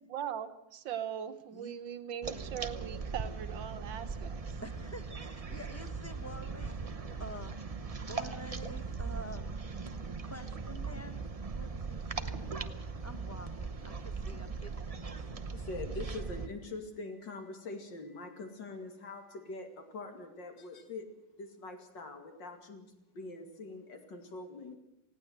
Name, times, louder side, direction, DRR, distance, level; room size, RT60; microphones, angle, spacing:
voice 1, 0.0-4.6, right 9 dB, 85° right, 10 dB, 1.9 m, -40 dB
sound 1, 2.2-16.5, right 4 dB, 35° right, 0.6 m, -39 dB
voice 2, 4.6-7.6 8.1-9.6 10.2-11.2 11.6-12.6 13.0-15.4, equal, 10° left, 8 dB, 1.1 m, -48 dB
voice 3, 15.5-21.1 21.4-24.8, left 3 dB, 75° left, 5 dB, 3.1 m, -44 dB
19.0 x 17.0 x 8.1 m, 0.84 s
omnidirectional pair, 2.0 m